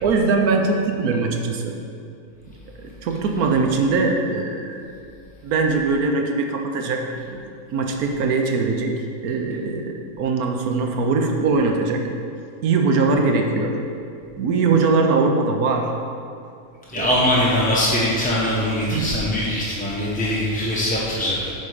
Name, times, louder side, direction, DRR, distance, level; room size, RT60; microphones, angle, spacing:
voice 1, 0.0-1.7 2.8-4.8 5.4-7.4 7.7-8.9 9.2-12.1 12.6-13.7 14.4-15.9 17.0-17.1 18.9-19.1, right 4 dB, 85° right, 3 dB, 1.3 m, -21 dB
voice 2, 16.9-21.5, left 1 dB, 10° left, -6 dB, 0.6 m, -22 dB
8.4 x 4.3 x 5.0 m, 2.4 s
omnidirectional pair, 1.6 m